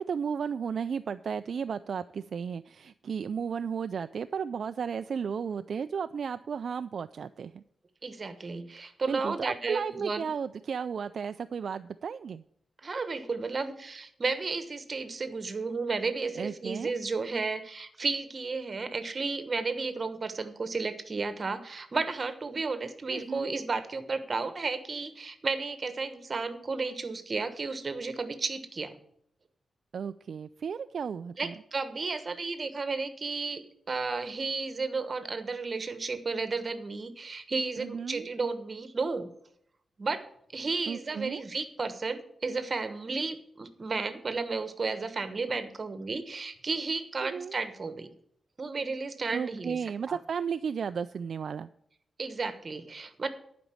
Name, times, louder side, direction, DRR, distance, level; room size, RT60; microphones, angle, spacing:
voice 1, 0.0-7.6 9.1-12.4 16.4-16.9 23.1-23.5 29.9-31.5 37.8-38.3 40.9-41.4 47.2-47.5 49.3-51.7, right 6 dB, 65° right, 10 dB, 0.3 m, -34 dB
voice 2, 8.0-10.3 12.8-28.9 31.4-39.3 40.0-40.3 40.5-48.1 48.6-49.8 50.1-50.2 52.2-53.3, right 4 dB, 35° right, 10 dB, 1.1 m, -33 dB
11.0 x 5.2 x 8.4 m, 0.69 s
wide cardioid pair, 120°, 0 cm